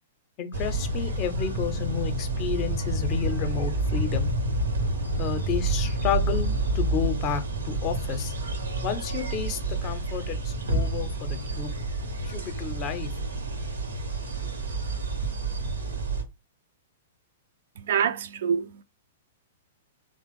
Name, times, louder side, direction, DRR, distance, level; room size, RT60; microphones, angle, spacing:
voice 1, 0.4-4.3 5.2-8.3 8.8-11.7 12.2-13.1, left 7 dB, 35° left, 0.6 m, -31 dB
sound 1, 0.5-16.2, right 2 dB, 75° right, 0.7 m, -29 dB
voice 2, 17.8-18.8, right 7 dB, 60° right, 0.3 m, -26 dB
3.0 x 2.0 x 3.4 m
figure-of-eight pair, 105°, 0 cm